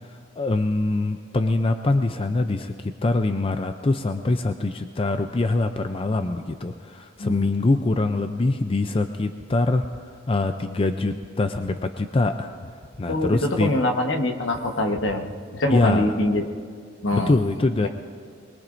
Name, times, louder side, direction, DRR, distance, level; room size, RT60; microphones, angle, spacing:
voice 1, 0.4-9.8 10.3-12.5 13.0-13.7 15.7-16.1 17.1-17.9, left 2 dB, 30° left, 7 dB, 0.5 m, -23 dB
sound 1, 9.4-9.5 9.8-9.9 11.1-11.2 11.5-11.6 12.8-12.9 13.2-13.3 14.5-14.6 14.9-15.0 16.2-16.3, equal, 40° right, 3.2 m, -42 dB
voice 2, 13.1-16.5 17.0-17.3, left 1 dB, 70° left, 3 dB, 1.3 m, -24 dB
23.0 x 21.5 x 2.6 m, 2.1 s
head